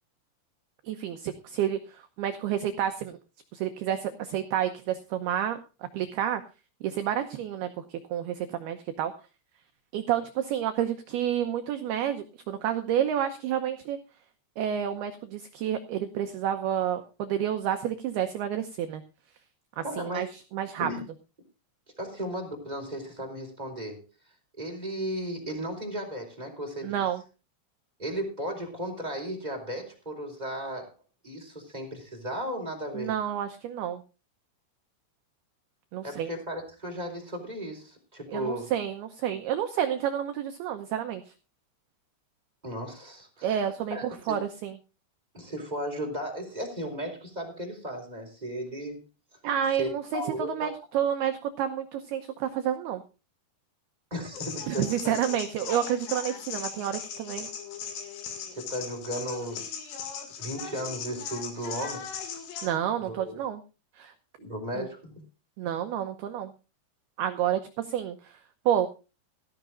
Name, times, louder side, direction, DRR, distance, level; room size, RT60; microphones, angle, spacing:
voice 1, 0.8-3.2 3.5-5.6 5.9-6.4 6.8-9.1 9.9-14.0 14.6-19.0 19.8-20.9 26.8-27.2 32.9-34.0 35.9-36.3 38.3-41.3 43.4-44.8 49.4-53.0 54.7-57.5 62.6-63.6 64.0-64.1 64.8-64.9 65.6-66.5 67.2-68.9, right 10 dB, 90° right, 7 dB, 2.2 m, -30 dB
voice 2, 19.8-20.2 20.8-21.0 22.0-24.0 24.6-27.0 28.0-30.9 31.2-33.1 36.0-38.7 42.6-43.6 43.9-44.4 45.3-49.0 49.8-50.7 54.1-55.1 58.5-59.8 60.4-62.1 63.0-63.3 64.4-65.2, equal, 10° right, 1 dB, 3.5 m, -35 dB
sound 1, 54.3-62.7, left 7 dB, 65° left, 4.2 m, -38 dB
17.5 x 14.0 x 2.5 m, 0.32 s
omnidirectional pair, 5.8 m